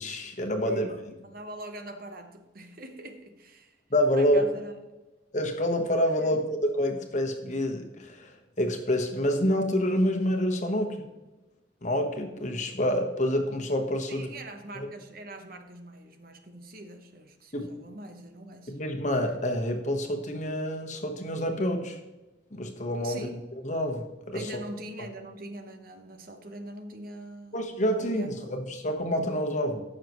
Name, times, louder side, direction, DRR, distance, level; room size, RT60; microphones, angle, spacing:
voice 1, 0.0-0.9 3.9-4.4 5.3-11.1 11.8-14.3 14.7-14.9 17.5-17.7 18.7-22.0 22.5-23.3 23.6-24.5 27.5-29.8, equal, 35° left, 3 dB, 1.2 m, -27 dB
voice 2, 0.7-3.8 4.1-4.7 6.2-6.4 14.1-18.8 23.0-23.4 24.3-28.5, right 1 dB, 45° right, 6 dB, 1.0 m, -43 dB
15.0 x 6.5 x 3.1 m, 1.1 s
head